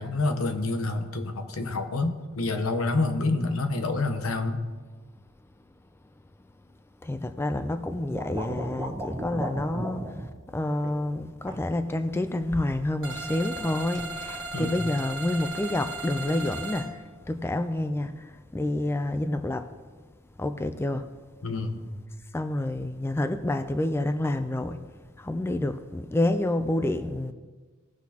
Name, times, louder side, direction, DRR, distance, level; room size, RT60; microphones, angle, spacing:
voice 1, 0.0-4.6 14.5-14.8 21.4-21.9, left 2 dB, 80° left, 0.9 m, -28 dB
voice 2, 7.0-10.1 10.5-16.9 17.3-18.1 18.5-19.7 20.4-21.0 22.3-24.8 25.2-27.3, left 1 dB, 10° left, 0.3 m, -28 dB
sound 1, 7.9-10.3 10.8-11.1 11.5-11.7 13.1-13.7 14.0-14.1, right 1 dB, 15° right, 1.1 m, -35 dB
sound 2, 13.0-16.9, right 2 dB, 65° right, 1.4 m, -36 dB
17.5 x 6.1 x 2.9 m
head